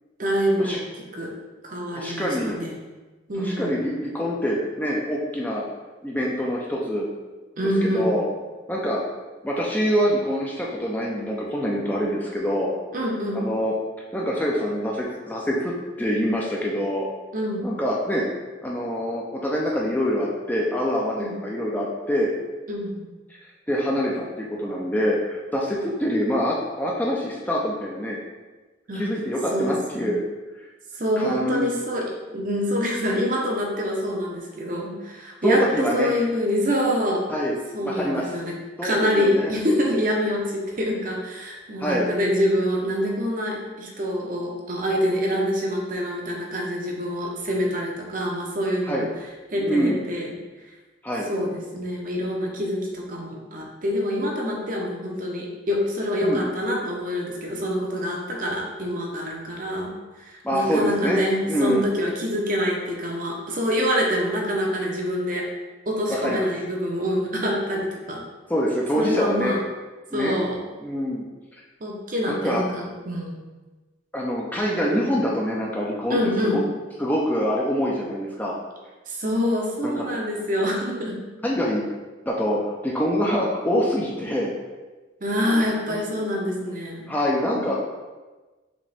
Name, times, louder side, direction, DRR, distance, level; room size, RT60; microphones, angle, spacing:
voice 1, 0.2-1.3 1.6-2.7 3.3-3.7 7.6-8.1 12.9-13.5 17.3-17.7 21.2-21.4 22.7-23.0 28.9-29.1 29.5-30.1 31.0-37.2 37.7-38.5 38.8-49.1 49.5-50.3 51.3-59.9 60.2-65.4 65.9-68.2 68.9-69.6 70.1-70.6 71.8-73.4 76.1-76.6 79.1-81.2 85.2-87.1 87.6-87.7, equal, 45° right, -1 dB, 0.7 m, -26 dB
voice 2, 2.0-2.6 3.4-5.6 6.0-7.1 7.8-8.3 8.7-9.0 9.4-12.7 13.3-13.7 14.1-15.7 16.0-17.1 17.6-18.2 18.6-22.3 23.7-28.2 28.9-30.2 31.2-31.7 35.4-36.1 37.3-37.6 37.8-38.2 38.8-39.5 41.8-42.1 48.9-49.1 49.6-50.0 51.0-51.3 56.2-56.4 60.4-61.2 61.5-61.9 66.1-66.4 68.5-69.6 70.1-70.3 70.8-71.2 72.3-72.6 74.1-76.6 77.0-78.5 79.8-80.0 81.4-81.8 82.3-84.5 85.9-86.1 87.1-87.7, equal, 10° left, -4 dB, 0.5 m, -25 dB
5.0 x 3.0 x 3.4 m, 1.2 s
head